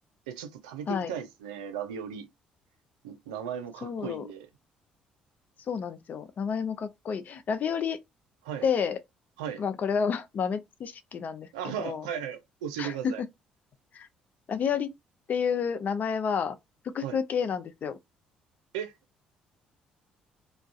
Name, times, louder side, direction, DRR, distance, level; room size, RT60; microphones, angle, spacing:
voice 1, 0.3-2.3 3.0-4.5 8.4-8.7 9.4-9.6 11.5-13.2 17.0-17.2 18.7-18.9, right 8 dB, 85° right, 0.4 m, -36 dB
voice 2, 3.8-4.3 5.7-8.0 8.6-9.0 9.6-12.1 12.8-13.3 13.9-14.1 14.5-14.9 15.3-16.6 16.9-18.0, left 6 dB, 50° left, 0.4 m, -30 dB
2.3 x 2.1 x 2.5 m
hypercardioid pair, 55°, 4 cm